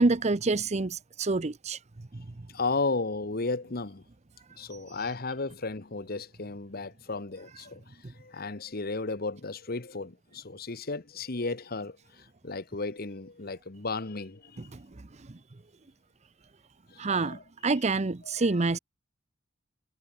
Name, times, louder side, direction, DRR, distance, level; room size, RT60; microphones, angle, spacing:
voice 1, 0.0-1.8 2.1-2.5 4.7-5.0 8.0-8.1 14.7-15.4 17.0-18.8, right 3 dB, 35° right, 0.7 m, -28 dB
voice 2, 2.5-4.0 4.6-14.7 16.9-17.4 18.4-18.5, left 3 dB, 55° left, 1.3 m, -34 dB
head